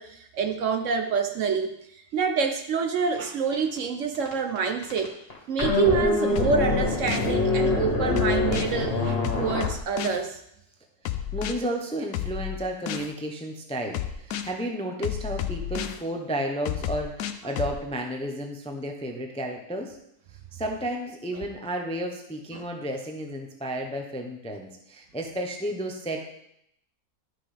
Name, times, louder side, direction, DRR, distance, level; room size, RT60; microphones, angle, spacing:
voice 1, 0.0-5.1 5.5-10.4 17.4-17.5 21.3-21.4 22.5-22.6, right 5 dB, 65° right, 6 dB, 0.9 m, -27 dB
sound 1, 3.2-3.3 3.5-3.8 4.1-4.6 4.8-9.7, left 2 dB, 40° left, 1.7 m, -25 dB
sound 2, 6.4-7.3 8.2-8.7 9.2-10.2 11.1-11.5 12.1-13.1 13.9-14.5 15.0-16.0 16.7-17.8, left 11 dB, 70° left, 1.0 m, -31 dB
voice 2, 11.3-20.0 20.5-26.2, right 1 dB, 10° left, 3 dB, 0.4 m, -32 dB
11.5 x 5.9 x 3.4 m, 0.77 s
omnidirectional pair, 1.6 m